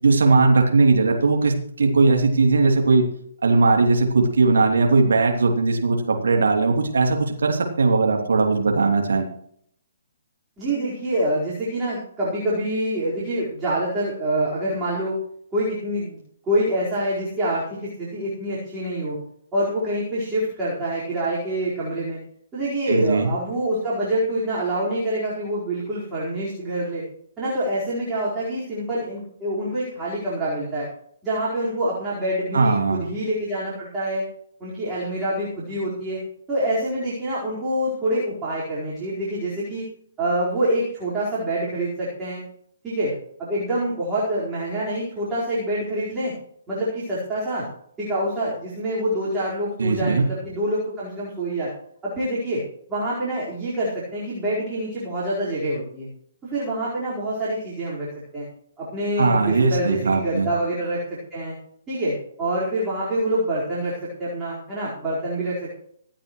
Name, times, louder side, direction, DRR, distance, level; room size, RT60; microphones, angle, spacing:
voice 1, 0.0-3.1 3.4-9.3 22.9-23.3 32.5-33.0 49.8-50.3 59.2-60.5, right 3 dB, 60° right, 2 dB, 3.0 m, -19 dB
voice 2, 10.6-15.2 15.5-16.2 16.4-19.2 19.5-22.2 22.5-27.0 27.4-30.9 31.2-34.2 34.6-36.2 36.5-39.8 40.2-42.4 42.8-43.1 43.4-46.3 46.7-47.7 48.0-51.7 52.0-52.6 52.9-56.1 56.4-58.1 58.3-58.5 58.8-61.0 61.3-61.5 61.9-65.7, right 1 dB, 15° right, -9 dB, 4.7 m, -26 dB
26.0 x 8.8 x 3.2 m, 0.68 s
figure-of-eight pair, 130°, 0 cm